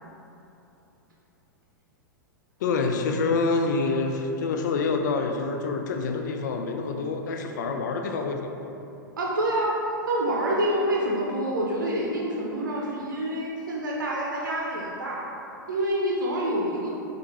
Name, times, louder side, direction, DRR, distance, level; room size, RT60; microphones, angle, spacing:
voice 1, 2.6-8.7, left 4 dB, 60° left, 4 dB, 0.5 m, -27 dB
voice 2, 9.2-15.3 15.7-16.9, right 1 dB, 70° right, -3 dB, 0.7 m, -27 dB
6.5 x 2.5 x 3.2 m, 2.9 s
figure-of-eight pair, 100°, 11 cm